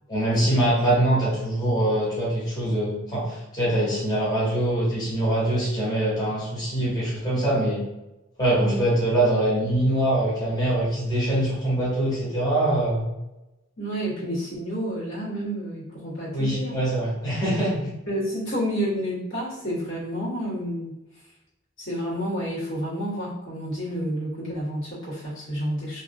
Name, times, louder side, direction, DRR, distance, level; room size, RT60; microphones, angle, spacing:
voice 1, 0.1-7.8 8.4-13.0 16.3-17.9, right 1 dB, 20° left, -8 dB, 0.8 m, -23 dB
voice 2, 13.8-16.8 18.1-20.9 21.8-26.0, equal, 85° left, -9 dB, 1.4 m, -30 dB
2.7 x 2.5 x 2.5 m, 0.94 s
head